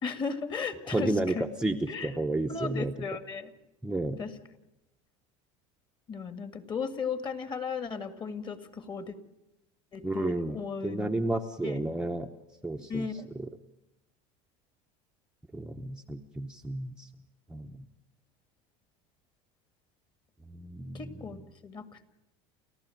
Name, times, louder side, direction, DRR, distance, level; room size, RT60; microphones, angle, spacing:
voice 1, 0.0-1.5 1.9-2.1 2.5-3.5 4.2-4.4 6.1-9.2 9.9-11.2 11.6-11.8 12.8-13.3 20.9-22.1, left 5 dB, 30° left, 9 dB, 2.0 m, -36 dB
voice 2, 0.9-1.8 2.0-2.9 3.8-4.2 10.0-10.6 10.8-12.3 12.6-13.1 13.4-13.5 15.5-17.1 17.5-17.8 20.5-21.0, right 2 dB, 5° right, 2 dB, 0.9 m, -31 dB
30.0 x 14.5 x 9.3 m, 0.94 s
supercardioid pair, 135°, 16 cm